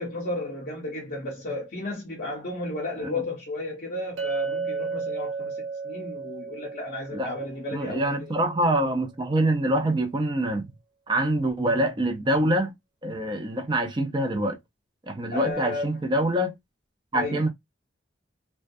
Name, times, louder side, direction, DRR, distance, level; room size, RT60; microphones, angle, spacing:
voice 1, 0.0-8.3 15.3-16.3 17.1-17.4, left 2 dB, 50° left, 0.6 m, -33 dB
Chink clink, 4.2-8.4, right 4 dB, 85° right, 0.5 m, -34 dB
voice 2, 7.7-10.7 11.1-12.7 13.0-14.6 15.1-16.6 17.1-17.5, right 1 dB, 25° right, 0.5 m, -25 dB
2.2 x 2.2 x 2.5 m
head